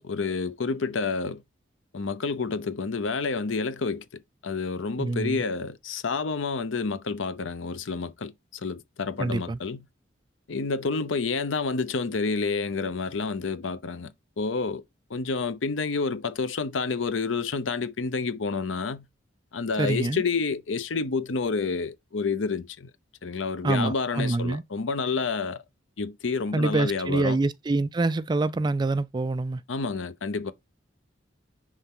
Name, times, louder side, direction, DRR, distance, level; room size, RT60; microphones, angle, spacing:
voice 1, 0.0-1.4 1.9-4.0 4.4-9.8 10.5-14.1 14.4-14.8 15.1-19.1 19.5-22.9 23.2-25.6 26.0-27.4 29.7-30.5, left 4 dB, 85° left, 0.7 m, -29 dB
voice 2, 5.0-5.4 9.2-9.6 19.8-20.2 23.6-24.6 26.5-29.6, right 2 dB, 20° right, 0.3 m, -26 dB
9.7 x 3.5 x 3.7 m
head